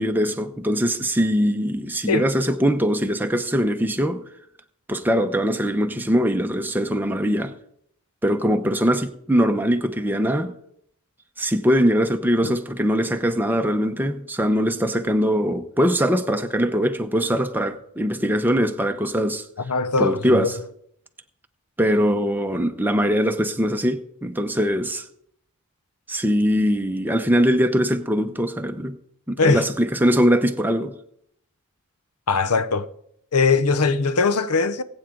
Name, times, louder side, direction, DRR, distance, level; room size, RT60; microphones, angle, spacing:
voice 1, 0.0-4.2 4.9-7.5 8.2-10.5 11.4-19.4 20.0-20.5 21.8-25.0 26.1-29.0 29.3-30.9, equal, 10° right, 0.8 m, -22 dB
voice 2, 19.6-20.5 29.4-29.6 32.3-32.9 33.3-34.8, left 4 dB, 85° left, 0.8 m, -20 dB
20.0 x 8.8 x 3.9 m
head